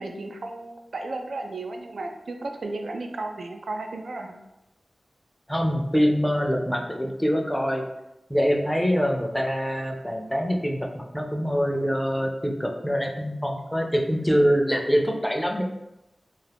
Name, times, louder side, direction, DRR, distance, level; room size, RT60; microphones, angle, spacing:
voice 1, 0.0-4.4, right 2 dB, 90° right, 3 dB, 0.3 m, -34 dB
voice 2, 5.5-7.8 8.3-15.6, equal, 5° left, 2 dB, 0.4 m, -24 dB
2.4 x 2.3 x 3.3 m, 0.93 s
wide cardioid pair, 85°, 0 cm